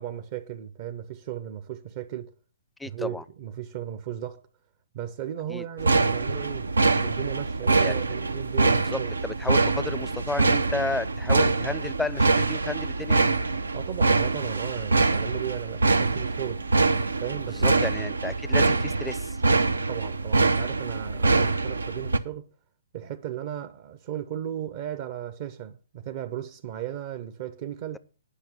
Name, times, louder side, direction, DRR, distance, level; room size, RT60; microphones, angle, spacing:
voice 1, 0.0-2.3 2.9-4.4 4.9-9.2 13.7-16.6 17.2-17.7 19.9-22.5 22.9-28.0, right 11 dB, 45° right, 0.8 m, -36 dB
voice 2, 2.8-3.2 5.5-5.7 7.7-8.0 8.6-13.3 17.3-19.4, left 2 dB, 5° left, 0.5 m, -33 dB
sound 1, 5.8-22.2, right 3 dB, 85° right, 0.7 m, -24 dB
10.0 x 5.9 x 7.0 m
figure-of-eight pair, 130°, 0 cm